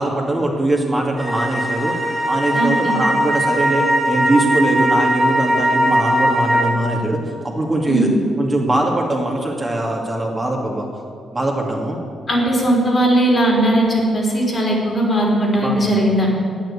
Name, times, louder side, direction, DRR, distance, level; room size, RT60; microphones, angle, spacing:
voice 1, 0.0-1.9 2.2-8.1 8.4-10.8 11.3-12.0 15.6-15.8, right 1 dB, 25° right, -1 dB, 2.3 m, -21 dB
sound 1, 1.2-6.7, equal, 10° right, 2.3 m, -19 dB
voice 2, 2.5-3.0 7.9-8.1 12.3-16.3, right 1 dB, 40° left, -1 dB, 3.7 m, -18 dB
9.0 x 8.9 x 8.5 m, 2.4 s
hypercardioid pair, 40°, 0 cm